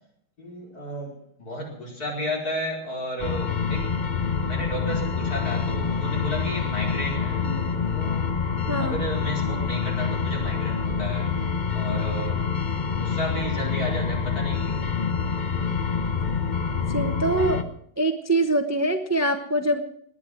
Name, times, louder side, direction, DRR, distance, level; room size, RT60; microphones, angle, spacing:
voice 1, 0.4-1.1 1.4-3.8 4.4-7.4 7.9-8.3 8.8-11.3 11.7-12.4 12.9-14.9, equal, 50° left, -1 dB, 5.3 m, -33 dB
sound 1, 3.2-17.6, left 5 dB, 35° left, 0.8 m, -26 dB
voice 2, 8.7-9.0 16.9-17.6 18.0-19.8, right 1 dB, 15° right, 7 dB, 0.7 m, -24 dB
19.0 x 11.0 x 6.0 m, 0.67 s
omnidirectional pair, 2.0 m